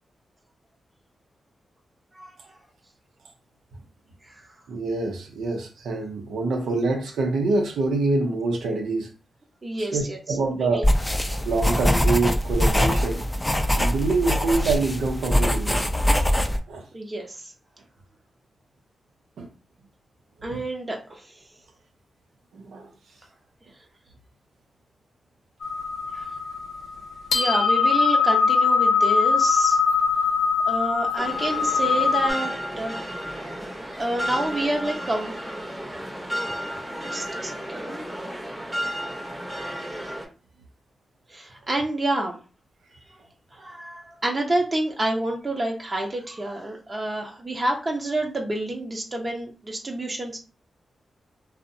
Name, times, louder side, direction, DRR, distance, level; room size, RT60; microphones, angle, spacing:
voice 1, 2.1-2.5 4.3-4.4 9.6-10.8 16.9-17.5 20.4-21.4 26.1-26.3 27.3-29.8 30.7-33.0 33.6-35.3 35.8-36.3 37.0-38.0 41.3-42.4 43.5-50.4, right 1 dB, 40° right, 0.7 m, -29 dB
voice 2, 4.7-9.1 9.9-10.9 11.4-13.2 13.7-15.9 16.7-16.8 19.4-19.5 20.5-20.6 22.5-22.9, right 3 dB, 85° right, 0.5 m, -25 dB
Writing with pencil, 10.8-16.6, equal, 15° left, 0.4 m, -22 dB
sound 1, 25.6-32.3, left 5 dB, 80° left, 0.4 m, -22 dB
sound 2, 31.2-40.2, equal, 5° right, 0.8 m, -33 dB
2.6 x 2.0 x 2.6 m
supercardioid pair, 45°, 0 cm